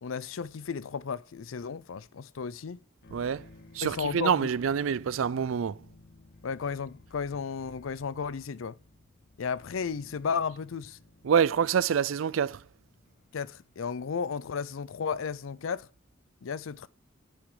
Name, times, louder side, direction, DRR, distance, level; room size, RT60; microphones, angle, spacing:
voice 1, 0.0-2.8 3.8-4.5 6.4-8.8 9.4-11.0 13.3-15.9 16.4-16.9, left 6 dB, 90° left, 0.5 m, -34 dB
sound 1, 3.0-14.4, left 2 dB, 55° left, 0.7 m, -56 dB
voice 2, 3.1-3.5 3.7-5.8 11.2-12.6, right 7 dB, 85° right, 0.4 m, -26 dB
9.0 x 8.4 x 4.8 m
head